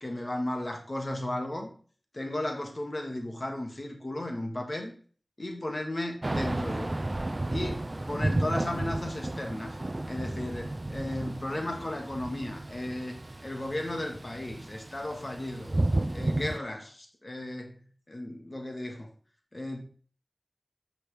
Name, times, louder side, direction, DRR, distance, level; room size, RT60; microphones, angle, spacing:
voice 1, 0.0-1.7 2.1-4.9 5.4-6.9 7.5-9.7 10.1-15.8 16.1-19.1 19.5-19.8, left 1 dB, 45° left, 2 dB, 1.6 m, -35 dB
Thunder / Rain, 6.2-16.6, right 2 dB, 40° right, 0.4 m, -33 dB
7.9 x 5.8 x 3.4 m, 0.42 s
wide cardioid pair, 55°, 0 cm